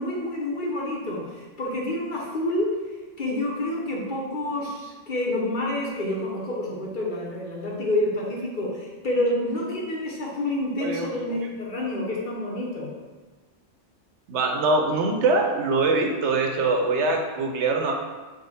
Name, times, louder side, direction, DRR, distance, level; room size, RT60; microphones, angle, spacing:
voice 1, 0.0-2.7 3.2-12.9, left 1 dB, 50° left, -3 dB, 0.8 m, -28 dB
voice 2, 10.8-11.2 14.3-17.9, right 3 dB, 75° right, 3 dB, 0.9 m, -23 dB
5.0 x 2.1 x 4.1 m, 1.4 s
omnidirectional pair, 1.2 m